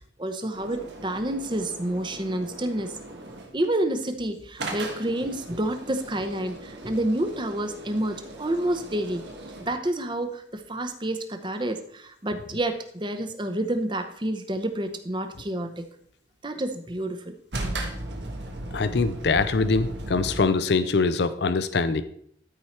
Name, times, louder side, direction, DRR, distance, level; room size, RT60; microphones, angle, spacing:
voice 1, 0.2-2.9 3.5-9.2 9.6-15.9 16.4-17.3, right 1 dB, 25° right, 7 dB, 0.8 m, -29 dB
sound 1, 0.5-3.7 4.6-9.9 17.5-20.4, right 2 dB, 70° right, 1.3 m, -37 dB
voice 2, 18.7-22.0, left 4 dB, 65° left, 12 dB, 0.5 m, -23 dB
13.0 x 4.7 x 4.3 m, 0.65 s
head